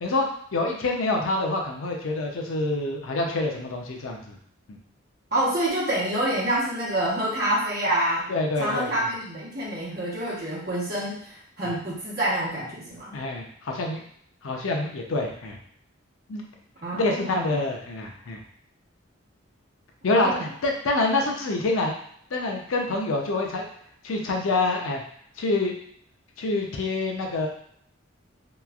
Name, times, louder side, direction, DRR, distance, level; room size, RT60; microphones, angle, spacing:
voice 1, 0.0-4.4 4.7-4.8 8.3-8.9 13.1-14.0 14.4-15.6 16.3-16.4 16.9-18.4 20.0-22.0 22.3-23.7 24.0-25.0 25.4-25.8 26.4-27.5, left 2 dB, 75° left, 1 dB, 0.5 m, -26 dB
voice 2, 5.3-8.3 8.6-13.1 16.8-17.6 20.1-20.5, right 1 dB, 50° right, -7 dB, 1.0 m, -27 dB
3.0 x 2.4 x 2.3 m, 0.65 s
head